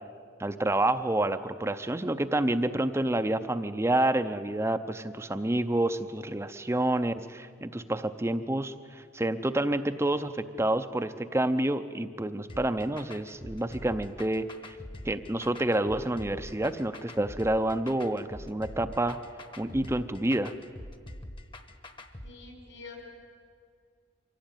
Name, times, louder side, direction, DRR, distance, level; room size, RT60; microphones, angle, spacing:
voice 1, 0.4-14.8 15.0-19.2 19.6-20.5, right 1 dB, 15° right, 9 dB, 0.5 m, -28 dB
sound 1, 12.5-22.3, left 1 dB, 25° left, 1.1 m, -44 dB
voice 2, 22.2-23.0, left 4 dB, 75° left, 2 dB, 6.1 m, -46 dB
24.5 x 17.0 x 9.0 m, 2.2 s
head